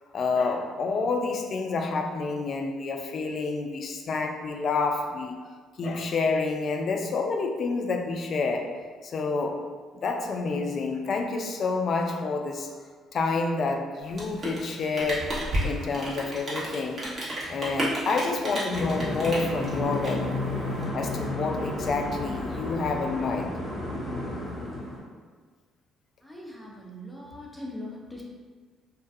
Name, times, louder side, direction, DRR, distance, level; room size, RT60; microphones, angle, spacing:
voice 1, 0.1-5.4 5.8-8.8 9.0-9.6 9.9-12.8 13.1-15.3 15.6-17.1 17.5-20.4 20.9-23.6, left 4 dB, 55° left, 4 dB, 0.3 m, -28 dB
Rain, 14.0-20.8, right 1 dB, 45° right, 0.9 m, -32 dB
sound 1, 18.7-25.0, left 1 dB, 25° left, 1.0 m, -32 dB
voice 2, 26.2-28.2, left 1 dB, ahead, -3 dB, 0.6 m, -40 dB
2.3 x 2.2 x 2.5 m, 1.5 s
hypercardioid pair, 60°, 0 cm